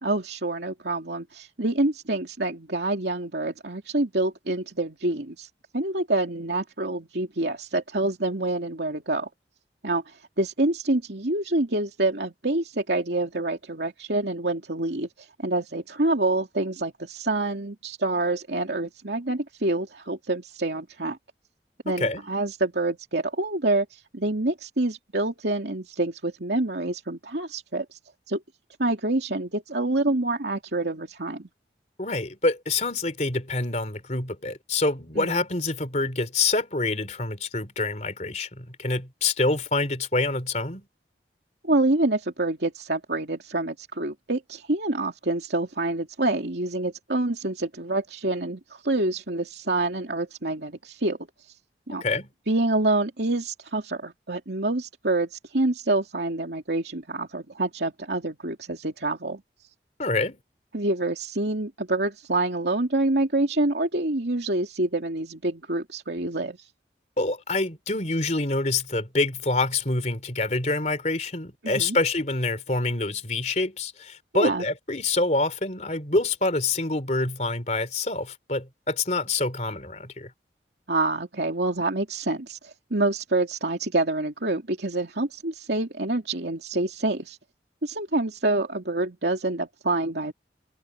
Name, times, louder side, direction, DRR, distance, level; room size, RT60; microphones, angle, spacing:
voice 1, 0.0-5.5 5.7-9.3 9.8-21.2 21.8-28.0 28.3-28.4 28.8-31.5 35.2-35.4 41.6-51.2 51.9-52.0 52.5-59.4 60.7-66.7 71.6-72.0 74.3-74.6 80.9-87.4 87.8-90.3, right 2 dB, 75° right, 2.6 m, -27 dB
voice 2, 32.0-40.9 52.0-52.3 60.0-60.4 67.2-80.3, left 3 dB, 40° left, 3.7 m, -26 dB
head